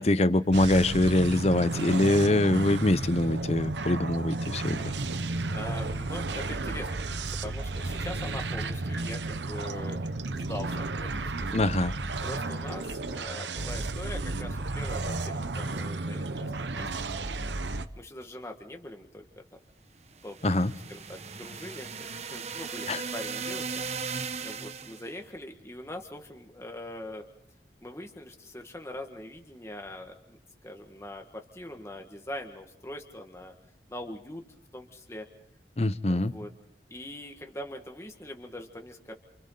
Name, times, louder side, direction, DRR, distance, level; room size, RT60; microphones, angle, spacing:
voice 1, 0.0-4.8 11.5-11.9 20.4-20.7 22.9-23.0 35.8-36.3, left 1 dB, 35° left, 15 dB, 0.8 m, -24 dB
sound 1, 0.5-17.9, right 2 dB, 85° right, 0.9 m, -33 dB
voice 2, 5.5-7.0 7.4-10.0 10.3-11.5 12.2-17.4 18.0-19.3 20.2-23.7 24.0-24.1 24.4-27.2 27.8-33.5 33.9-34.4 34.7-35.3 36.1-36.5 36.9-39.1, left 1 dB, 15° left, 3 dB, 1.6 m, -42 dB
sound 2, 20.2-25.1, right 5 dB, 40° right, 1.0 m, -37 dB
29.0 x 28.5 x 3.9 m, 0.74 s
head